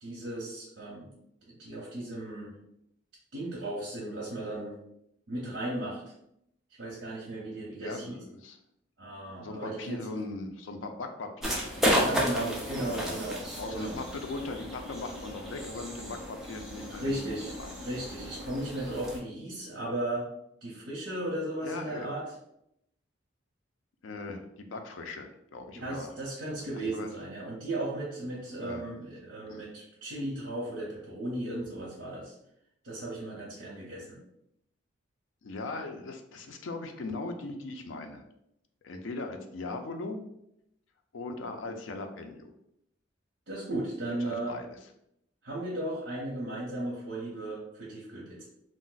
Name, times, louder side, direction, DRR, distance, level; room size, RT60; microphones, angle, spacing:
voice 1, 0.0-1.1 1.5-2.5 3.3-4.8 5.3-6.1 6.8-8.2 9.0-10.0 12.0-14.0 16.9-17.5 17.8-20.3 20.6-22.2 25.7-32.3 32.8-34.2 43.5-44.6 45.4-48.5, right 1 dB, 70° right, -6 dB, 0.7 m, -36 dB
voice 2, 7.8-8.6 9.4-11.6 11.9-12.3 12.8-13.2 13.6-17.7 21.6-22.1 24.0-26.1 26.8-27.1 28.6-28.8 29.5-29.6 35.4-38.2 38.8-40.2 41.1-42.5 44.3-44.8, left 3 dB, 85° left, 5 dB, 0.5 m, -39 dB
sound 1, 11.4-19.2, equal, ahead, 0.5 m, -33 dB
2.4 x 2.0 x 3.8 m, 0.78 s
head